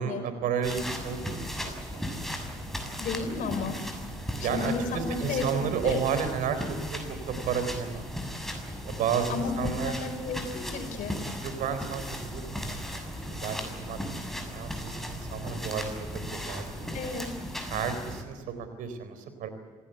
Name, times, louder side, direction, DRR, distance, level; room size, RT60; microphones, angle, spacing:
voice 1, 0.0-2.4 4.4-8.1 8.8-9.9 11.4-12.9 13.2-16.9 17.6-19.5, right 7 dB, 75° right, 9 dB, 4.1 m, -32 dB
sound 1, 0.6-18.2, equal, ahead, 7.0 m, -37 dB
voice 2, 3.0-3.8 4.4-6.0 9.3-11.2 16.9-17.3, left 4 dB, 65° left, 6 dB, 5.4 m, -33 dB
26.5 x 17.5 x 8.1 m, 1.5 s
hypercardioid pair, 55°, 14 cm